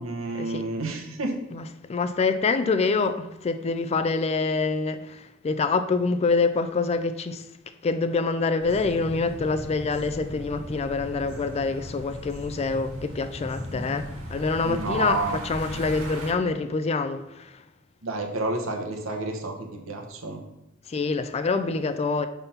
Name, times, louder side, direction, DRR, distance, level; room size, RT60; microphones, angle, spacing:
voice 1, 0.0-1.3 14.6-15.4 18.0-20.4, right 2 dB, 70° right, 1.0 m, -30 dB
voice 2, 1.5-7.5 7.8-17.6 20.9-22.3, left 4 dB, 30° left, 0.3 m, -26 dB
sound 1, 8.6-16.3, equal, 90° right, 1.2 m, -37 dB
5.6 x 3.5 x 5.7 m
head